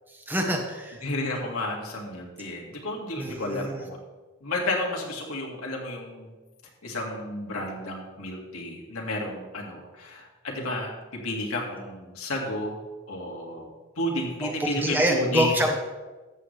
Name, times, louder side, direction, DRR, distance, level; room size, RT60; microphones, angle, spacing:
voice 1, 0.1-1.0 3.2-3.8 14.4-14.5 14.8-15.7, equal, 10° right, 2 dB, 0.9 m, -26 dB
voice 2, 1.0-4.0 4.4-6.3 6.8-12.8 13.1-13.7 14.0-15.6, left 1 dB, 80° left, -1 dB, 2.2 m, -32 dB
13.5 x 8.2 x 3.3 m, 1.3 s
head